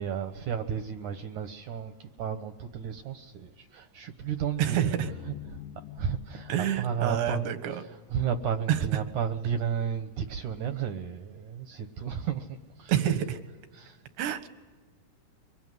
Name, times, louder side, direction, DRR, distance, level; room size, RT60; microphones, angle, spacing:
voice 1, 0.0-4.8 5.2-5.6 5.9-13.2 13.7-14.0, right 8 dB, 65° right, 2.1 m, -33 dB
voice 2, 4.6-5.1 6.5-7.8 8.7-8.8 12.9-13.4 14.2-14.5, right 10 dB, 85° right, 3.8 m, -27 dB
sound 1, 5.0-9.4, left 11 dB, 65° left, 2.2 m, -47 dB
25.0 x 24.5 x 9.6 m
omnidirectional pair, 4.8 m